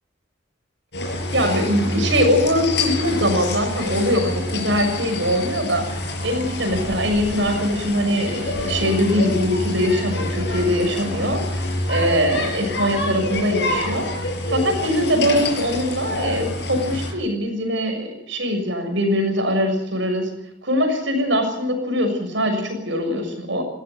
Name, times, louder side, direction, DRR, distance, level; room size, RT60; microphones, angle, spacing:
sound 1, 0.9-17.1, left 2 dB, 60° left, 6.1 m, -27 dB
voice 1, 1.3-14.1 14.5-20.3 20.6-23.6, equal, 75° right, 5 dB, 6.8 m, -22 dB
20.0 x 16.5 x 9.4 m, 0.81 s
head